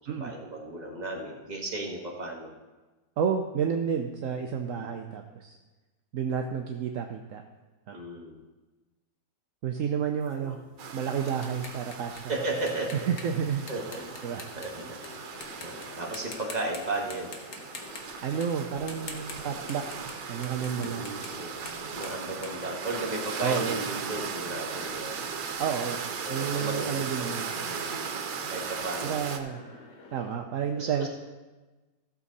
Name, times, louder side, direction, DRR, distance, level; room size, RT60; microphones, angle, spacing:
voice 1, 0.1-2.5 4.7-4.9 7.9-8.4 10.3-10.6 12.3-13.1 13.7-14.1 14.5-15.0 15.6-17.3 20.7-21.5 21.9-25.2 26.2-28.0 28.5-29.2 30.7-31.1, right 2 dB, 25° right, -2 dB, 1.7 m, -35 dB
voice 2, 3.2-5.6 6.1-7.4 7.9-8.0 9.6-10.6 10.9-12.2 12.9-13.6 14.2-14.5 18.2-19.8 20.3-21.1 23.4-23.8 25.6-26.0 26.3-27.5 29.0-29.6 30.1-31.1, right 7 dB, 60° right, 4 dB, 0.9 m, -30 dB
sound 1, 10.2-15.1 15.4-15.9 16.1-16.8 17.1-23.4, left 3 dB, 50° left, 1.5 m, -45 dB
sound 2, 10.8-29.4, right 6 dB, 90° right, 1.6 m, -37 dB
sound 3, 13.8-30.4, left 3 dB, 75° left, 2.1 m, -49 dB
15.5 x 7.0 x 4.1 m, 1.2 s
omnidirectional pair, 1.9 m